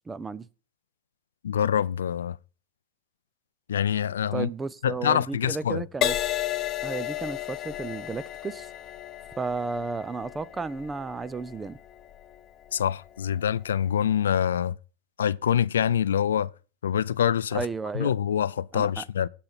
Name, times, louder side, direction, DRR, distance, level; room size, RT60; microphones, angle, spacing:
voice 1, 0.1-0.5 4.3-6.2 6.8-8.7 9.4-11.8 17.5-18.1 18.7-19.0, right 4 dB, 15° right, 0.5 m, -33 dB
voice 2, 1.4-2.4 3.7-4.5 4.8-5.8 12.7-14.8 15.2-16.5 16.8-17.7 17.9-19.3, left 9 dB, 90° left, 0.4 m, -25 dB
Crash cymbal, 6.0-13.6 14.3-14.6, left 13 dB, 35° left, 0.6 m, -34 dB
17.5 x 5.9 x 4.1 m
hypercardioid pair, 120°, 0 cm